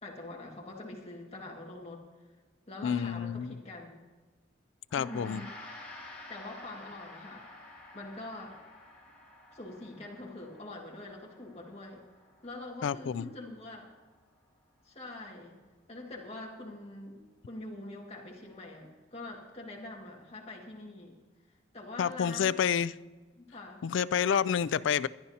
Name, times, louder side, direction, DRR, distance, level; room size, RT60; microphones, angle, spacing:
voice 1, 0.0-2.0 2.7-4.0 4.9-5.5 6.3-7.5 7.9-8.6 9.5-12.0 12.4-13.9 14.8-15.6 15.9-21.2 21.7-22.7 23.4-23.8, left 2 dB, 35° left, -1 dB, 1.9 m, -44 dB
voice 2, 2.8-3.6 4.9-5.4 12.8-13.3 22.0-22.9 23.8-25.1, left 7 dB, 85° left, 17 dB, 0.4 m, -29 dB
Gong, 4.9-14.4, left 2 dB, 10° left, 3.2 m, -51 dB
22.5 x 11.0 x 2.8 m, 1.3 s
head